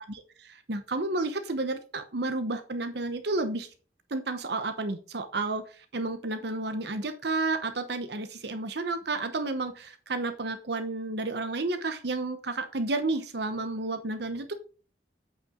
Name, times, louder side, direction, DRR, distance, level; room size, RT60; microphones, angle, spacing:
voice 1, 0.1-3.7 4.1-14.5, right 2 dB, 65° right, 8 dB, 0.9 m, -31 dB
8.5 x 5.7 x 3.7 m, 0.37 s
head